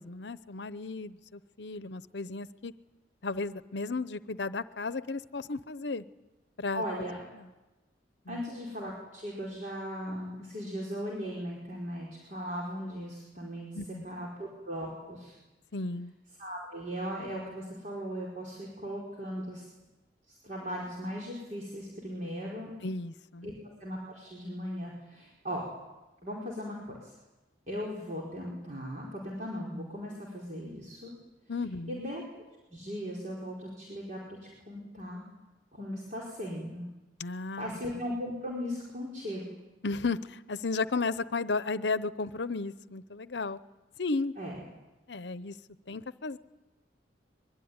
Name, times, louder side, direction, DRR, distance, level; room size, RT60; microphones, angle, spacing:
voice 1, 0.0-2.7 3.2-6.0 6.6-7.1 7.3-7.5 8.3-8.4 13.7-14.0 15.7-16.1 22.8-23.5 31.5-32.1 37.2-37.7 39.8-43.6 44.0-44.3 45.1-45.6 45.9-46.4, left 3 dB, 70° left, 15 dB, 0.8 m, -34 dB
voice 2, 6.7-7.2 8.3-13.8 14.0-15.3 16.4-19.6 20.3-22.7 23.4-23.5 23.8-25.6 26.2-27.1 27.7-31.1 31.9-32.2 32.7-35.2 35.7-36.9 37.6-39.4 44.4-44.6, equal, 45° right, -3 dB, 4.9 m, -38 dB
24.5 x 22.0 x 9.7 m, 1.1 s
head